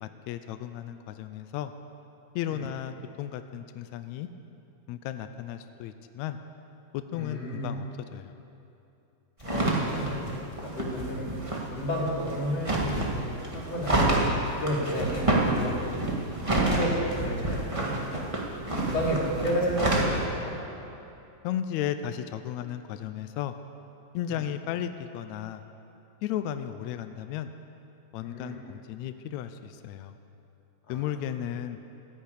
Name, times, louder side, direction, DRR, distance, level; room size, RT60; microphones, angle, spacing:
voice 1, 0.0-1.7 2.3-4.3 4.9-6.4 6.9-7.9 8.1-8.3 21.4-23.5 24.1-25.6 26.2-27.5 28.1-30.2 30.9-31.8, left 10 dB, 85° left, 9 dB, 1.6 m, -34 dB
voice 2, 7.1-7.7 9.4-10.2 10.6-11.3 11.7-14.2 14.6-15.2 15.6-16.0 16.5-18.3 18.8-20.6 24.3-24.4 28.2-28.6 30.9-31.0, equal, 50° left, -3 dB, 3.8 m, -32 dB
sound 1, 9.4-20.3, right 2 dB, 20° right, 0.8 m, -28 dB
14.5 x 10.5 x 8.5 m, 2.8 s
omnidirectional pair, 3.9 m